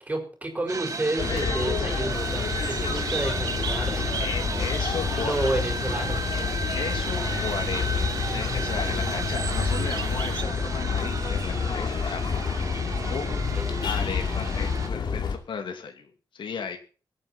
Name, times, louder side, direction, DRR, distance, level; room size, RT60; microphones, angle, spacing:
voice 1, 0.0-4.2 5.1-6.2 13.5-13.8, right 2 dB, 15° right, 2 dB, 4.9 m, -30 dB
sound 1, 0.7-14.9, right 4 dB, 40° right, 1.8 m, -34 dB
sound 2, 1.2-15.4, left 5 dB, 65° left, 2.6 m, -28 dB
sound 3, 2.1-10.4, right 7 dB, 65° right, 1.2 m, -38 dB
voice 2, 4.2-5.3 6.8-7.8 8.3-12.2 13.1-13.3 13.8-16.8, left 6 dB, 80° left, 4 dB, 2.5 m, -35 dB
22.5 x 9.0 x 4.4 m, 0.37 s
wide cardioid pair, 160°, 8 cm